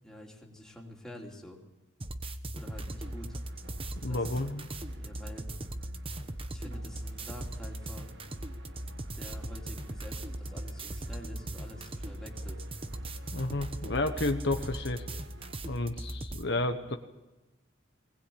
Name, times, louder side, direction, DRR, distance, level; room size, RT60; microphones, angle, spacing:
voice 1, 0.0-1.6 2.5-3.4 4.1-4.4 5.0-5.5 6.5-8.2 9.1-12.7, left 1 dB, 5° left, -2 dB, 3.2 m, -48 dB
sound 1, 2.0-16.4, right 1 dB, 25° right, 1.0 m, -39 dB
sound 2, 2.6-15.6, equal, 55° right, 1.7 m, -49 dB
voice 2, 4.0-4.7 13.3-15.0 15.6-17.0, left 2 dB, 55° left, 6 dB, 1.2 m, -31 dB
20.0 x 19.5 x 8.7 m, 1.0 s
head